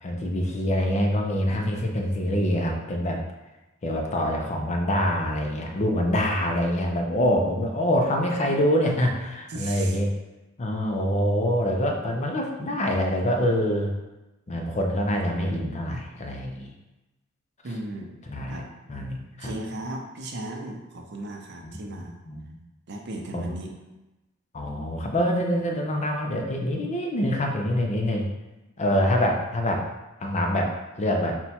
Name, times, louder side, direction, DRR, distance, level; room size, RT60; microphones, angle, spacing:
voice 1, 0.0-3.2 3.8-10.1 10.6-13.9 14.5-16.7 18.3-18.6 18.9-19.5 21.6-22.6 23.3-23.5 24.5-28.3 28.8-29.8 30.2-31.4, equal, 35° left, 1 dB, 0.5 m, -25 dB
voice 2, 9.5-10.0 17.6-18.2 18.5-18.7 19.4-22.1 22.9-23.7, right 1 dB, 55° right, 2 dB, 0.6 m, -36 dB
4.3 x 2.2 x 4.2 m, 1.0 s
head